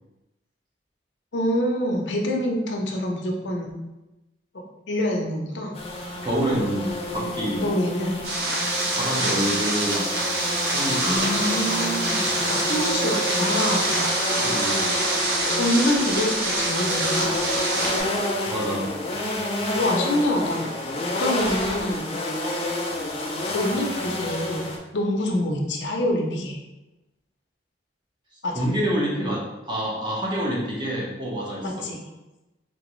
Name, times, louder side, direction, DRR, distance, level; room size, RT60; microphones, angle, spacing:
voice 1, 1.3-3.8 4.9-5.7 7.6-8.2 11.0-14.0 15.6-17.3 19.7-20.7 21.2-22.1 23.5-26.6 28.4-28.7 31.6-32.0, left 1 dB, 80° left, 1 dB, 0.7 m, -26 dB
sound 1, 5.7-24.8, left 1 dB, 35° left, 0.5 m, -29 dB
voice 2, 6.2-7.7 8.9-10.1 10.7-11.2 14.4-14.8 18.5-18.9 28.5-31.9, equal, 25° right, -4 dB, 0.8 m, -27 dB
sound 2, 8.2-18.0, right 2 dB, 60° right, 0.8 m, -25 dB
3.3 x 3.1 x 3.0 m, 1.0 s
head